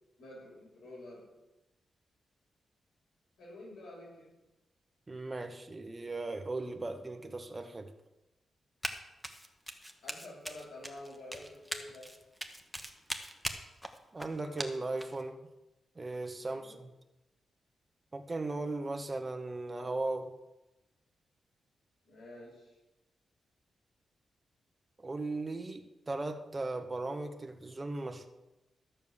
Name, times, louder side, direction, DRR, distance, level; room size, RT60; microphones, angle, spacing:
voice 1, 0.2-1.3 3.4-4.3 10.0-12.1 16.4-16.8 22.0-22.8, left 1 dB, 90° left, -3 dB, 5.9 m, -49 dB
voice 2, 5.1-7.9 14.1-15.4 15.9-16.9 18.1-20.3 25.0-28.3, right 2 dB, 25° right, 6 dB, 1.3 m, -37 dB
Run, 8.8-9.0 9.2-15.2, equal, ahead, 1.2 m, -40 dB
13.0 x 7.2 x 7.3 m, 0.97 s
wide cardioid pair, 115°, 0 cm